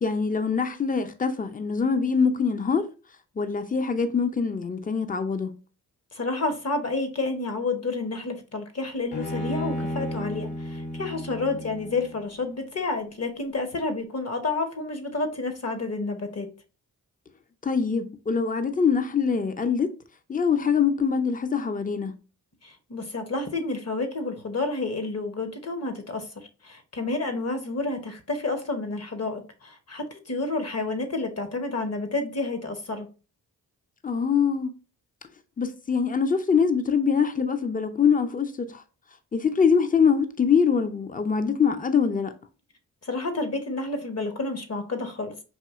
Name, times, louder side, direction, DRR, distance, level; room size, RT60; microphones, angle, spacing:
voice 1, 0.0-2.8 3.4-5.5 17.6-19.9 20.3-22.1 34.0-34.7 35.6-38.8 39.3-42.3, left 6 dB, 20° left, 0.6 m, -24 dB
voice 2, 6.1-16.5 22.6-26.3 26.6-33.1 43.0-45.3, left 3 dB, 40° left, 1.0 m, -30 dB
Bowed string instrument, 9.1-12.4, left 1 dB, 60° left, 1.4 m, -33 dB
4.2 x 2.7 x 2.4 m
supercardioid pair, 45°, 41 cm